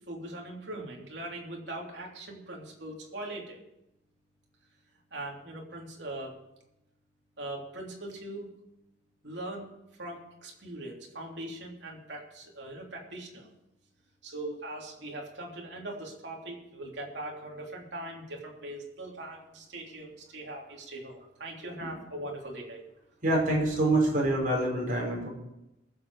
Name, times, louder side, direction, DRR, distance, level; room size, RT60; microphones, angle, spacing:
voice 1, 0.1-3.6 5.1-6.4 7.4-8.5 9.2-9.7 10.0-13.5 14.2-22.8, right 1 dB, 65° right, -1 dB, 3.2 m, -41 dB
voice 2, 23.2-25.3, right 1 dB, 45° right, -2 dB, 5.4 m, -26 dB
21.5 x 7.8 x 4.8 m, 0.89 s
head